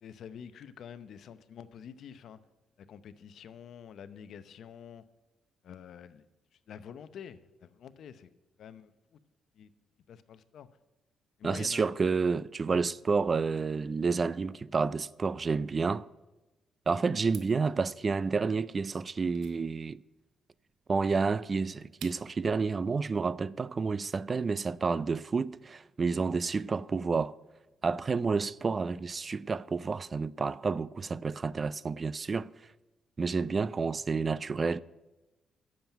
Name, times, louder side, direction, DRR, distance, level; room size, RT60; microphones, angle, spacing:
voice 1, 0.0-2.4 2.9-5.0 5.6-6.2 6.7-8.3 8.6-8.9 9.6-9.7 10.1-10.7 11.4-11.9 12.7-12.8, left 8 dB, 65° left, 0.7 m, -47 dB
voice 2, 11.4-16.1 16.9-20.0 20.9-27.3 27.8-32.5 33.2-34.8, right 4 dB, 35° right, 0.4 m, -30 dB
sound 1, 17.2-22.5, right 10 dB, 80° right, 0.9 m, -54 dB
10.0 x 7.4 x 9.0 m
cardioid pair, 90°, 0 cm